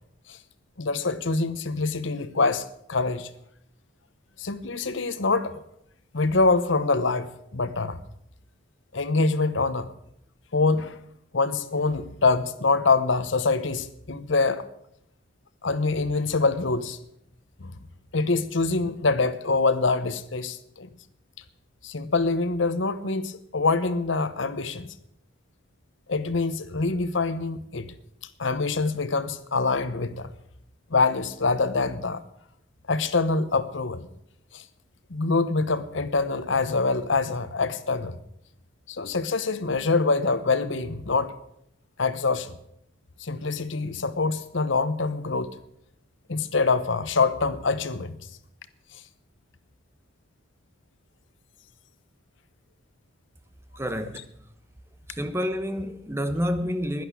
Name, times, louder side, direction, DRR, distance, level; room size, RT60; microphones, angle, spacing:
voice 1, 0.8-3.3 4.4-5.6 6.1-8.0 8.9-9.9 10.5-11.0 11.3-14.6 15.6-17.0 17.6-17.7 18.1-20.9 21.8-24.9 26.1-27.9 28.4-30.3 30.9-32.2 32.9-34.1 34.5-34.6 35.1-38.2 38.9-41.3 42.0-42.5 43.2-45.6 46.3-48.2, left 3 dB, 70° left, 1.0 m, -25 dB
voice 2, 53.8-54.3 55.1-57.0, equal, 15° right, 0.9 m, -28 dB
11.0 x 11.0 x 8.3 m
head